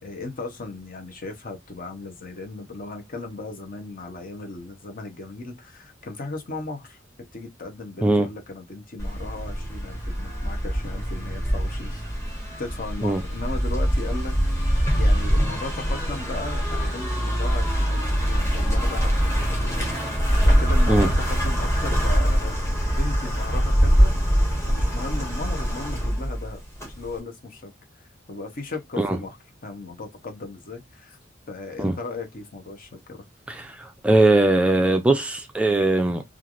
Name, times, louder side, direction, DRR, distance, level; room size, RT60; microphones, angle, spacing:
voice 1, 0.0-7.0 7.3-12.2 12.6-14.3 14.9-20.1 20.4-24.2 24.7-27.7 28.3-31.2 31.5-33.2, left 3 dB, 45° left, 0.8 m, -36 dB
sound 1, 9.0-27.2, equal, 15° left, 1.1 m, -23 dB
voice 2, 33.5-36.2, right 2 dB, 5° right, 0.3 m, -20 dB
3.2 x 2.4 x 2.4 m
head